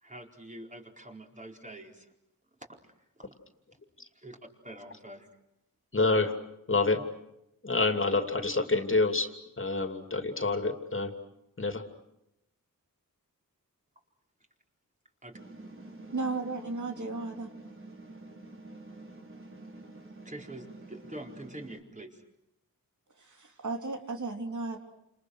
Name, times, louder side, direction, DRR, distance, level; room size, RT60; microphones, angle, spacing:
voice 1, 0.0-2.1 3.2-3.3 4.1-4.4 4.6-5.3 15.2-15.4 20.2-22.2, right 1 dB, 20° right, 2 dB, 4.4 m, -45 dB
voice 2, 5.9-6.3 6.7-7.0 7.6-11.1 11.6-11.8, left 3 dB, 35° left, 6 dB, 2.8 m, -27 dB
sound 1, 15.3-21.8, right 2 dB, 35° right, 4.6 m, -48 dB
voice 3, 16.1-17.5 23.2-25.0, right 3 dB, 55° right, 4 dB, 3.3 m, -35 dB
29.5 x 28.5 x 6.4 m, 0.84 s
wide cardioid pair, 130°, 35 cm